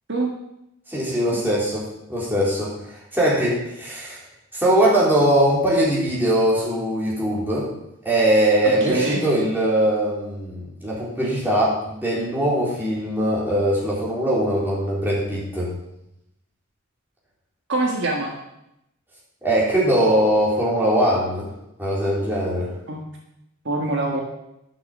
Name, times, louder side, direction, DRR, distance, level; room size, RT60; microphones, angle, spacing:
voice 1, 0.9-2.7 3.1-4.2 4.5-7.7 8.0-15.7 19.4-21.5 21.8-22.7, right 1 dB, 10° right, -6 dB, 3.8 m, -21 dB
voice 2, 8.6-9.2 17.7-18.3 22.9-23.0 23.6-24.2, right 2 dB, 55° right, -1 dB, 1.6 m, -24 dB
11.5 x 6.6 x 7.3 m, 0.84 s
head